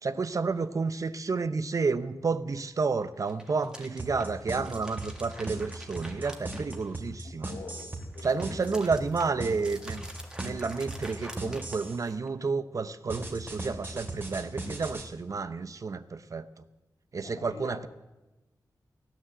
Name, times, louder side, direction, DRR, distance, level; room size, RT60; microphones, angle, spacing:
voice 1, 0.0-7.5 8.2-10.0 10.4-16.5 17.1-17.9, right 4 dB, 50° right, 0.7 m, -30 dB
sound 1, 3.1-7.3 7.7-12.3, right 1 dB, 10° right, 1.8 m, -47 dB
sound 2, 4.0-12.0 13.1-15.0, right 2 dB, 25° right, 2.8 m, -37 dB
voice 2, 7.2-9.0 9.3-9.6 10.2-10.4 17.2-17.9, left 3 dB, 75° left, 2.4 m, -46 dB
16.5 x 10.0 x 7.9 m
wide cardioid pair, 115°, 7 cm